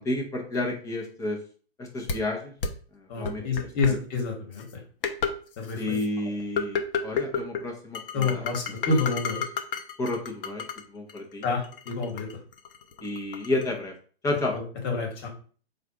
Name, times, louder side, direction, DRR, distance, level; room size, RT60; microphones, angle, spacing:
voice 1, 0.1-1.4 1.8-2.5 2.9-3.4 3.9-4.0 5.8-8.5 8.9-9.0 10.0-10.6 10.9-11.4 13.0-13.9 14.2-14.6, left 2 dB, 10° left, 0 dB, 0.7 m, -31 dB
sound 1, 2.1-2.2 2.6-2.7 3.2-3.9 4.6-4.7 5.0-5.3 5.6-6.1 6.6-7.6 7.9-10.8 11.1-13.6, left 6 dB, 60° left, 0.7 m, -30 dB
voice 2, 3.1-4.6 5.6-6.0 8.1-9.4 11.4-12.3 14.5-15.3, left 4 dB, 30° left, 1 dB, 1.4 m, -28 dB
4.0 x 2.5 x 4.7 m, 0.41 s
hypercardioid pair, 130°, 32 cm